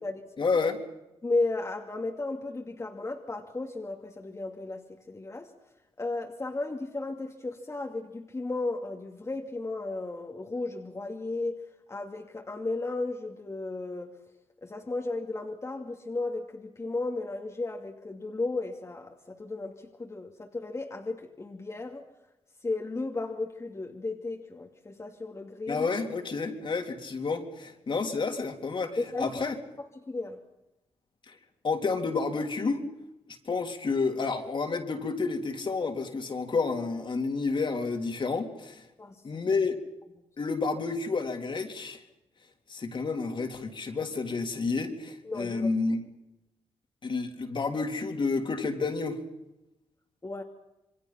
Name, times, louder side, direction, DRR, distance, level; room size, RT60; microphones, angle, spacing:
voice 1, 0.4-0.8 25.7-29.5 31.3-31.4 31.6-32.8 33.4-38.8 39.2-39.8 40.4-42.0 42.7-46.1 47.0-49.2, left 4 dB, 45° left, 4 dB, 3.5 m, -30 dB
voice 2, 1.2-5.5 6.0-11.6 11.9-14.2 14.6-22.0 22.6-25.9 29.0-29.3 29.8-30.4 39.0-39.4 45.2-45.8 50.2-50.4, left 2 dB, 25° left, 1 dB, 2.5 m, -34 dB
27.5 x 24.0 x 5.8 m, 0.94 s
cardioid pair, 85°, 11 cm